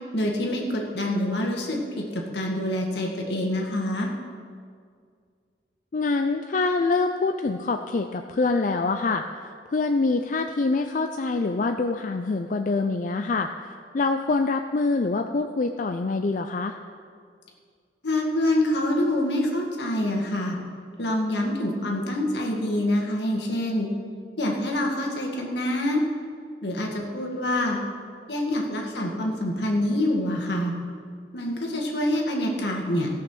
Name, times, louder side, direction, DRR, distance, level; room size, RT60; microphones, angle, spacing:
voice 1, 0.1-4.1 18.0-20.6 21.0-23.9 24.4-26.0 26.6-27.8 28.3-30.7 31.3-33.1, left 1 dB, 75° left, 0 dB, 1.9 m, -26 dB
voice 2, 5.9-16.8, left 3 dB, 45° left, 6 dB, 0.4 m, -25 dB
16.0 x 5.9 x 6.2 m, 2.1 s
head